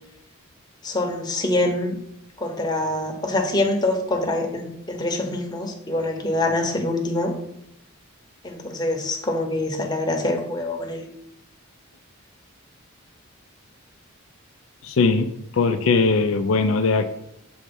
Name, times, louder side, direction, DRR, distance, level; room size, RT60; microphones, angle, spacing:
voice 1, 0.8-2.0 2.4-7.3 8.4-11.1, left 2 dB, 20° left, 2 dB, 0.9 m, -25 dB
voice 2, 14.8-17.0, left 4 dB, 70° left, 7 dB, 0.4 m, -20 dB
6.9 x 3.1 x 5.3 m, 0.78 s
head